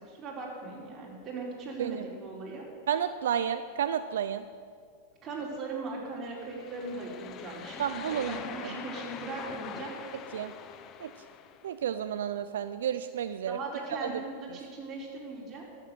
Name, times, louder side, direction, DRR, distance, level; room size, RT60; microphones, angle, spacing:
voice 1, 0.0-2.6 5.2-9.9 13.5-15.6, right 3 dB, 30° right, -3 dB, 4.4 m, -39 dB
voice 2, 2.9-4.4 7.8-8.4 10.3-10.5 11.0-11.1 11.6-13.6 14.0-14.1, right 9 dB, 85° right, 11 dB, 0.5 m, -31 dB
sound 1, 6.3-11.7, left 8 dB, 35° left, 0.8 m, -43 dB
13.0 x 7.5 x 9.3 m, 2.1 s
hypercardioid pair, 125°, 0 cm